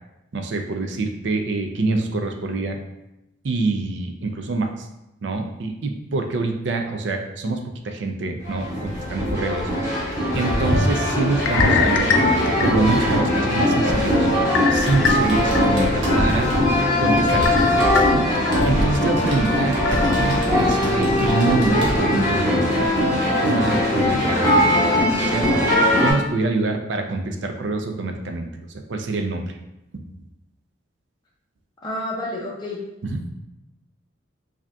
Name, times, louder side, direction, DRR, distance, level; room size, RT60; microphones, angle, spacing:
voice 1, 0.3-2.8 3.4-4.9 5.2-9.7 10.3-12.1 12.5-14.3 14.7-16.5 17.0-17.8 18.1-22.9 23.3-25.5 26.0-28.5 28.9-29.6 33.0-33.2, right 3 dB, 65° right, 5 dB, 0.4 m, -25 dB
sound 1, 8.4-26.1, left 1 dB, 15° right, 1.2 m, -20 dB
sound 2, 11.4-13.1 13.6-13.7 14.5-15.6 16.0-16.1 17.5-18.5 19.0-19.1 19.9-20.1, left 6 dB, 70° left, 0.3 m, -24 dB
Computer keyboard, 14.7-22.0, equal, 80° right, 1.0 m, -32 dB
voice 2, 31.8-32.8, left 1 dB, 20° left, -4 dB, 0.6 m, -29 dB
4.9 x 2.7 x 2.2 m, 0.91 s
head